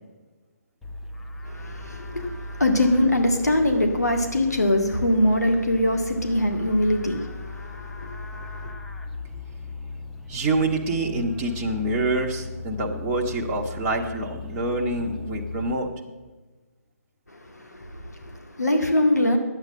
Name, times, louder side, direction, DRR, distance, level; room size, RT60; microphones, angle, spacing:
Livestock farm animals working animals, 0.8-15.7, left 3 dB, 5° left, 0.6 m, -37 dB
voice 1, 1.4-8.7 17.3-19.4, left 1 dB, 85° left, 3 dB, 2.1 m, -23 dB
voice 2, 10.3-15.9, right 2 dB, 20° right, -1 dB, 1.2 m, -26 dB
11.0 x 8.2 x 7.4 m, 1.3 s
figure-of-eight pair, 150°, 9 cm